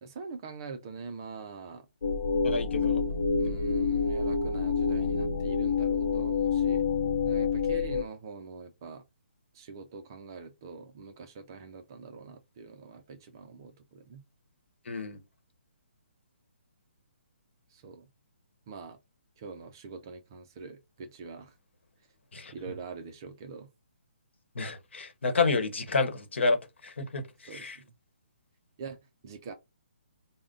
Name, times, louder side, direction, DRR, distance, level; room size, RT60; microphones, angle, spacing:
voice 1, 0.0-1.9 3.4-6.8 7.2-9.0 9.5-14.2 17.7-18.1 18.7-19.0 19.4-21.5 22.5-23.7 27.5-27.9 28.8-29.5, right 5 dB, 20° right, 0.3 m, -44 dB
sound 1, 2.0-8.0, left 5 dB, 65° left, 0.6 m, -27 dB
voice 2, 2.4-3.0 3.5-3.7 14.8-15.2 22.3-22.5 24.5-27.8, left 4 dB, 80° left, 1.0 m, -30 dB
3.7 x 2.0 x 3.7 m
hypercardioid pair, 175°, 6 cm